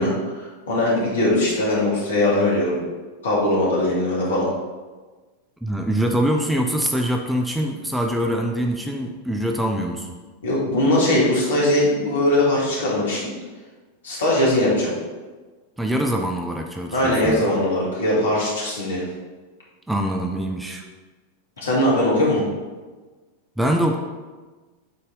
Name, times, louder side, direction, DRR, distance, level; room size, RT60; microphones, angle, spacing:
voice 1, 0.0-2.8 3.2-4.5 10.4-13.3 14.0-14.9 16.9-19.0 21.6-22.4, left 1 dB, 65° left, -5 dB, 2.2 m, -20 dB
voice 2, 5.6-10.1 15.8-17.4 19.9-20.8 23.6-24.0, right 1 dB, 5° right, 2 dB, 0.6 m, -24 dB
8.4 x 4.1 x 3.8 m, 1.3 s
figure-of-eight pair, 90°, 0 cm